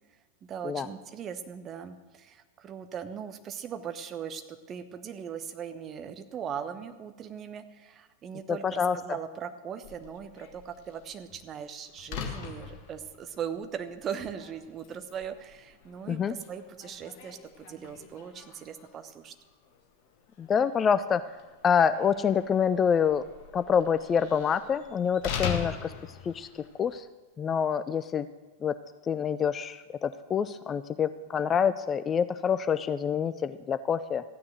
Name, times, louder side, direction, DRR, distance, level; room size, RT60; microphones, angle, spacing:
voice 1, 0.5-19.3, right 8 dB, 30° right, 9 dB, 1.0 m, -39 dB
voice 2, 8.5-9.0 16.1-16.4 20.4-21.2 21.6-23.2 23.5-25.9 26.2-26.5 26.8-27.0 27.4-28.3 28.6-28.7 29.1-34.2, left 7 dB, 25° left, 13 dB, 0.4 m, -26 dB
Slam, 9.8-27.0, left 7 dB, 45° left, 1.7 m, -42 dB
14.5 x 9.6 x 6.3 m, 1.3 s
figure-of-eight pair, 90°, 0 cm